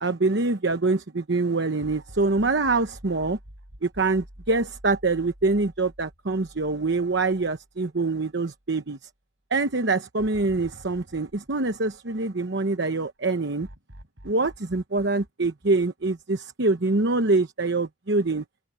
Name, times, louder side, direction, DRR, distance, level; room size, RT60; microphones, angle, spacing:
voice 1, 0.0-3.4 3.8-9.0 9.5-13.7 14.2-18.4, right 3 dB, 65° right, 1.0 m, -25 dB
sound 1, 1.8-8.1 8.5-8.6 10.2-12.7 13.6-16.4, equal, 85° right, 4.8 m, -49 dB
open air
head